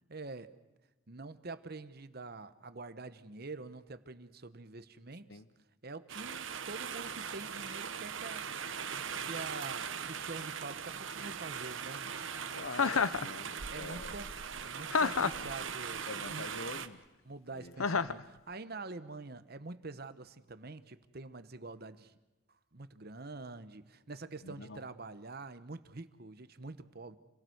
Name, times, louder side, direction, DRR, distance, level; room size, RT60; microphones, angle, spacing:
voice 1, 0.1-0.5 1.1-5.4 5.8-12.1 13.7-14.3 14.6-16.5 17.2-22.1 22.7-27.2, right 3 dB, 50° right, 12 dB, 1.0 m, -46 dB
sound 1, 6.1-16.9, right 7 dB, 65° right, 1.1 m, -40 dB
voice 2, 12.6-14.1 16.1-17.0 17.5-17.7 24.4-24.8, left 2 dB, 55° left, 14 dB, 0.9 m, -45 dB
Chuckle chortle, 12.7-13.3 14.9-15.5 17.8-18.2, left 5 dB, 85° left, 0.8 m, -29 dB
28.0 x 17.0 x 7.9 m, 1.1 s
head